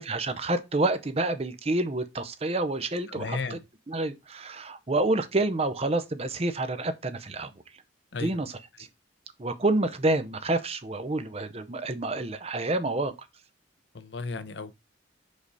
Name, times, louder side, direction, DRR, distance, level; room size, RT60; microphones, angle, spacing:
voice 1, 0.0-3.6 3.9-7.5 8.2-8.5 8.8-8.9 9.4-13.1, right 2 dB, 30° right, 0.7 m, -28 dB
voice 2, 3.1-3.6 8.1-8.4 13.9-14.7, left 4 dB, 65° left, 0.7 m, -34 dB
5.2 x 5.0 x 4.0 m
head